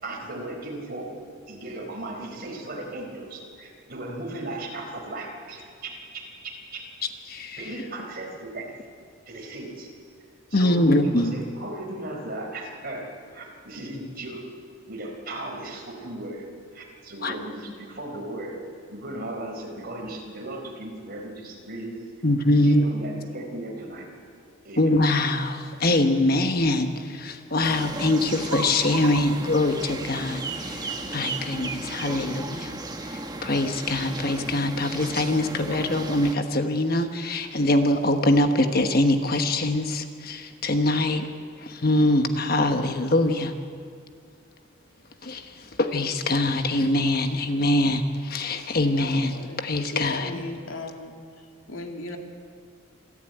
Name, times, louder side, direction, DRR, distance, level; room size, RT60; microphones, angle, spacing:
voice 1, 0.0-1.2 1.5-6.8 7.6-8.7 9.3-9.9 10.5-13.0 13.3-14.5 14.9-16.4 16.7-21.9 22.6-24.1 24.6-24.9, right 1 dB, 45° right, 1 dB, 4.5 m, -36 dB
voice 2, 7.3-7.6 10.5-11.3 17.2-17.3 22.2-22.8 24.8-32.7 33.0-41.3 41.6-43.5 45.2-50.3, left 1 dB, 45° left, 6 dB, 1.2 m, -23 dB
sound 1, 27.6-36.4, right 3 dB, 20° right, 1.2 m, -34 dB
voice 3, 49.0-51.1 51.7-52.2, left 2 dB, 80° left, 2 dB, 2.6 m, -37 dB
27.0 x 12.5 x 9.1 m, 2.3 s
head